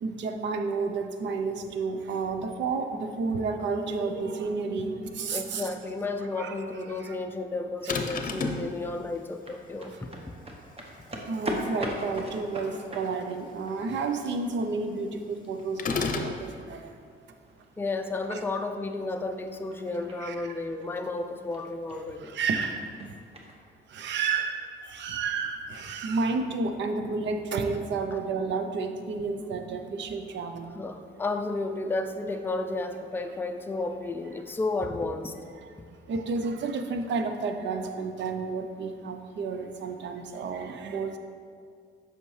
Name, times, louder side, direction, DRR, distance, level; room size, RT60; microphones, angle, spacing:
voice 1, 0.0-5.7 6.4-6.5 6.9-7.1 9.9-10.0 11.3-15.9 16.1-17.0 18.3-18.4 20.2-20.5 22.2-23.1 23.9-30.7 35.6-35.8 36.1-41.2, right 4 dB, 65° right, 6 dB, 0.7 m, -31 dB
voice 2, 5.3-10.1 17.8-22.4 30.7-35.3, left 3 dB, 10° left, 5 dB, 0.4 m, -32 dB
sound 1, 7.9-8.7 15.8-16.4, left 4 dB, 45° left, 0.7 m, -29 dB
sound 2, 8.4-23.6, right 1 dB, 30° right, 1.1 m, -43 dB
8.1 x 5.9 x 3.2 m, 2.2 s
cardioid pair, 90°, 20 cm